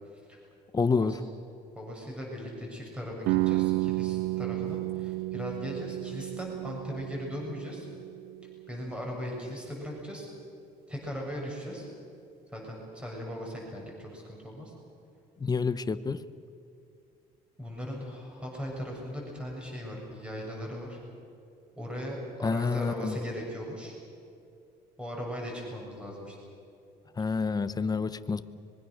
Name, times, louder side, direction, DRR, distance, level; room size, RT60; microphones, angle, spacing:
voice 1, 0.7-1.2 15.4-16.3 22.4-23.2 27.2-28.4, left 4 dB, 25° left, 12 dB, 1.0 m, -28 dB
voice 2, 1.7-7.9 8.7-10.3 10.9-11.9 12.5-14.7 17.6-21.0 21.7-24.0 25.0-26.4, equal, 5° right, -2 dB, 7.1 m, -38 dB
sound 1, 3.3-9.0, right 20 dB, 90° right, 0.5 m, -32 dB
25.0 x 22.5 x 6.6 m, 2.6 s
cardioid pair, 110°, 17 cm